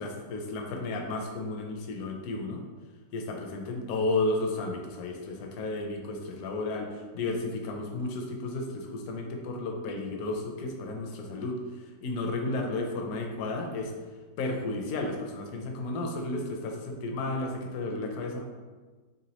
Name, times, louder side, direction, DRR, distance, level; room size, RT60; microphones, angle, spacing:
voice 1, 0.0-2.6 3.1-13.9 14.4-18.4, left 2 dB, 70° left, 2 dB, 0.9 m, -33 dB
4.0 x 3.4 x 2.9 m, 1.4 s
omnidirectional pair, 2.0 m